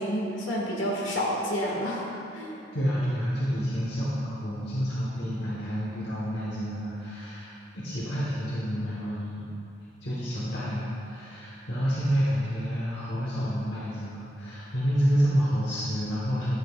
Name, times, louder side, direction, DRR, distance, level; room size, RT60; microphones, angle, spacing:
voice 1, 0.0-2.6, equal, 75° left, -4 dB, 1.8 m, -29 dB
voice 2, 2.7-9.5 10.0-16.6, equal, 55° left, -7 dB, 1.2 m, -29 dB
11.5 x 7.7 x 2.4 m, 2.9 s
head